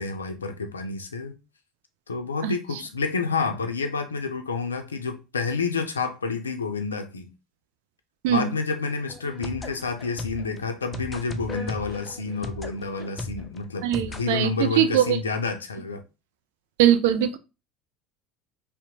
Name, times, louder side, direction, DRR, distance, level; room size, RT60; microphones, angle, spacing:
voice 1, 0.0-1.3 2.1-7.3 8.3-16.0, left 4 dB, 90° left, 0.4 m, -29 dB
sound 1, 9.1-14.3, left 2 dB, 20° left, 0.4 m, -37 dB
voice 2, 13.8-15.2 16.8-17.4, right 10 dB, 70° right, 0.3 m, -21 dB
2.7 x 2.1 x 2.5 m
hypercardioid pair, 70°, 0 cm